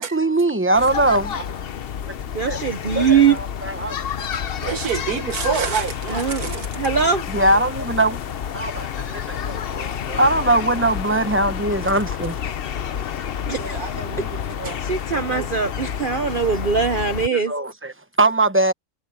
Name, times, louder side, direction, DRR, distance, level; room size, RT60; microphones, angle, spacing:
voice 1, 0.0-1.6 2.1-2.2 2.5-2.6 2.9-4.0 7.3-8.2 8.5-12.4 16.1-16.2 17.3-18.7, right 2 dB, 10° right, 0.8 m, -21 dB
sound 1, 0.7-17.3, left 8 dB, 50° left, 0.7 m, -29 dB
voice 2, 2.3-3.4 6.1-6.4 6.8-7.2 13.5-13.9 14.8-17.5, right 6 dB, 45° right, 0.8 m, -21 dB
voice 3, 4.2-6.7 13.6-14.8 15.1-15.5, right 7 dB, 75° right, 1.5 m, -28 dB
omnidirectional pair, 1.6 m